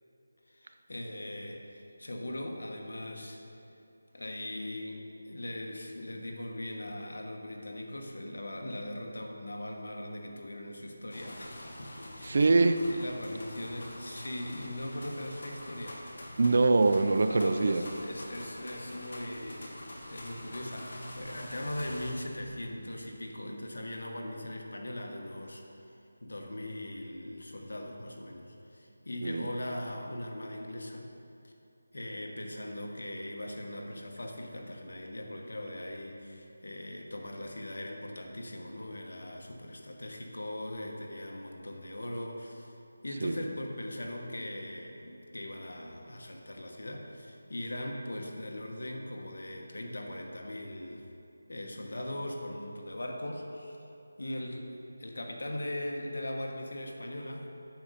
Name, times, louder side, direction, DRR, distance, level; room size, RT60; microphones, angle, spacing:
voice 1, 0.5-3.4 4.1-12.4 12.8-16.0 17.3-25.6 26.2-31.1 31.4-31.5 31.9-42.7 43.0-51.0 51.5-53.8 54.2-57.5, left 1 dB, 80° left, 2 dB, 1.2 m, -40 dB
sound 1, 11.1-22.1, left 1 dB, 55° left, 1.4 m, -45 dB
voice 2, 12.2-12.8 16.4-17.8 29.2-29.5 43.2-43.4, right 3 dB, 45° right, 9 dB, 0.4 m, -24 dB
8.7 x 6.4 x 4.1 m, 2.8 s
figure-of-eight pair, 170°, 0 cm